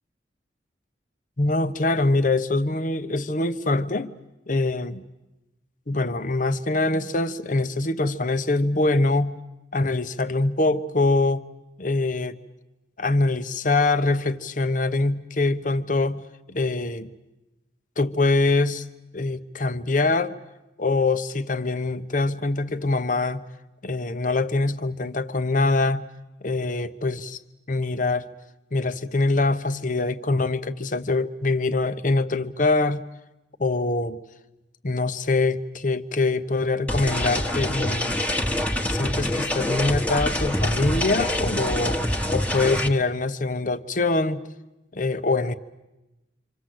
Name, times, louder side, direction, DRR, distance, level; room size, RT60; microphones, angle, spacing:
voice 1, 1.4-4.1 4.5-5.0 5.9-9.4 9.7-11.5 11.8-12.4 13.0-16.2 16.5-17.1 18.0-18.9 19.1-20.4 20.8-23.5 23.8-26.1 26.4-27.4 27.7-28.3 28.7-33.0 33.6-34.2 34.8-38.2 38.9-42.0 42.3-44.4 44.9-45.5, left 2 dB, 45° left, 11 dB, 0.9 m, -24 dB
sound 1, 36.9-42.9, left 1 dB, 10° left, 1.3 m, -25 dB
27.0 x 26.0 x 7.8 m, 1.0 s
head